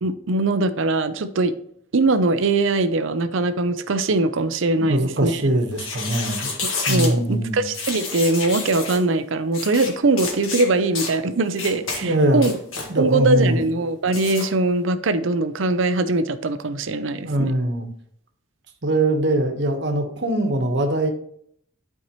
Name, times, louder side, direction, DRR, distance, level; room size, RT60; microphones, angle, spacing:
voice 1, 0.0-1.5 1.9-5.4 6.6-12.5 13.0-17.5, right 2 dB, 75° right, 10 dB, 0.6 m, -21 dB
voice 2, 4.8-6.5 6.9-7.6 12.0-12.5 12.9-13.6 17.2-17.9 18.8-21.1, right 1 dB, 55° right, 4 dB, 1.2 m, -22 dB
sound 1, 5.7-7.1 7.7-9.0 9.5-9.9 10.2-10.7 11.0-11.1 11.6-12.0 12.4-12.9 14.1-14.5, left 4 dB, 90° left, 1.7 m, -29 dB
11.5 x 4.6 x 3.1 m, 0.68 s
head